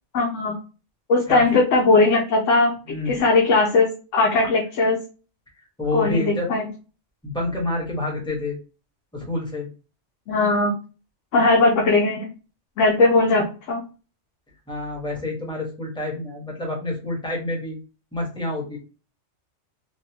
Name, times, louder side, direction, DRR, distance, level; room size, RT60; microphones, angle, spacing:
voice 1, 0.1-0.5 1.1-2.7 3.1-5.0 5.9-6.7 10.3-10.7 11.3-12.3 12.8-13.8, left 3 dB, 90° left, 1 dB, 1.0 m, -19 dB
voice 2, 1.3-1.6 2.9-3.3 4.4-4.5 5.8-6.5 7.2-8.6 9.1-9.7 14.7-17.8 18.1-18.8, left 2 dB, 5° left, -1 dB, 1.0 m, -28 dB
3.4 x 2.3 x 2.8 m, 0.34 s
omnidirectional pair, 1.2 m